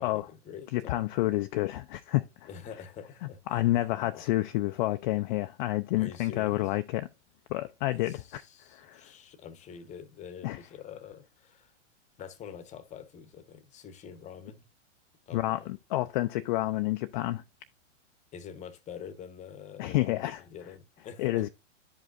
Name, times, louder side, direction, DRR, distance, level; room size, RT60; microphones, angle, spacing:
voice 1, 0.0-1.1 2.5-3.8 6.0-6.7 7.9-11.7 12.2-14.6 15.3-15.7 18.3-21.5, left 7 dB, 20° left, 1.0 m, -46 dB
voice 2, 0.7-2.5 3.5-7.1 7.5-8.4 8.7-9.1 10.4-10.6 15.3-17.4 19.8-20.4 21.2-21.5, left 17 dB, 40° left, 0.5 m, -29 dB
11.0 x 5.1 x 2.5 m
hypercardioid pair, 120°, 37 cm